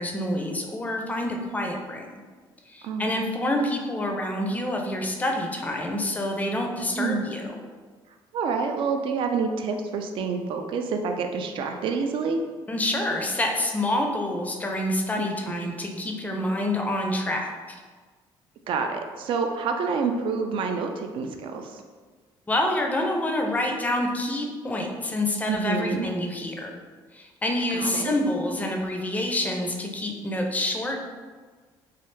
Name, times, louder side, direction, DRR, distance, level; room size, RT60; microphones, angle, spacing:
voice 1, 0.0-2.1 2.7-7.6 12.7-17.5 22.5-26.7 27.1-31.0, left 1 dB, 15° left, 2 dB, 0.4 m, -27 dB
voice 2, 2.8-3.2 7.0-7.2 8.3-12.4 18.7-21.8 25.5-26.1 27.7-28.2, right 5 dB, 60° right, 5 dB, 0.4 m, -28 dB
3.2 x 2.3 x 3.1 m, 1.5 s
cardioid pair, 115°, 10 cm